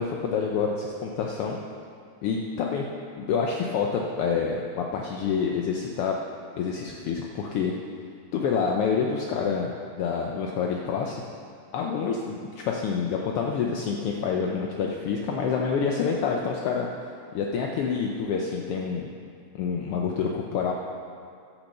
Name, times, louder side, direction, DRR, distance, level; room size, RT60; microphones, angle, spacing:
voice 1, 0.0-1.6 2.2-2.8 3.2-6.1 6.6-7.7 8.3-9.7 10.0-11.2 11.7-16.9 17.3-19.1 19.5-20.7, left 6 dB, 80° left, 0 dB, 1.3 m, -27 dB
11.5 x 6.0 x 6.7 m, 2.3 s
omnidirectional pair, 3.3 m